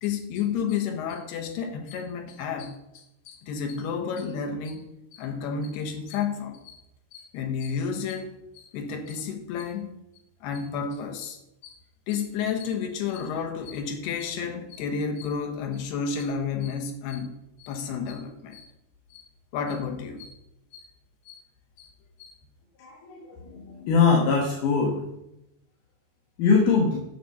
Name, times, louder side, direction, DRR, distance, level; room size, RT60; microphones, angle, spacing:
voice 1, 0.0-6.8 7.1-9.9 10.4-11.8 12.1-17.3 17.6-18.7 19.1-19.3 19.5-20.4 20.7-20.9 21.3-21.4 21.8-21.9 22.2-22.3, left 6 dB, 85° left, 4 dB, 3.3 m, -31 dB
voice 2, 22.8-23.2 23.5-25.0 26.4-27.0, left 5 dB, 65° left, -1 dB, 2.6 m, -22 dB
9.4 x 7.1 x 5.6 m, 0.87 s
omnidirectional pair, 4.6 m